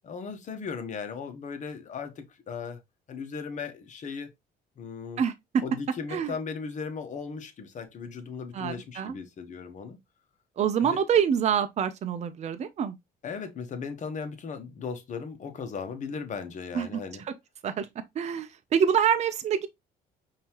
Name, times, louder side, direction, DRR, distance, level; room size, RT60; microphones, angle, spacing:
voice 1, 0.0-2.8 3.1-4.3 4.8-5.2 5.6-10.0 10.8-11.0 13.2-17.2, left 5 dB, 45° left, 1.1 m, -37 dB
voice 2, 5.2-5.6 6.1-6.3 8.5-9.2 10.6-13.0 16.7-17.0 17.6-17.9 18.2-19.7, right 8 dB, 40° right, 0.6 m, -26 dB
5.4 x 2.8 x 3.0 m
cardioid pair, 110°, 17 cm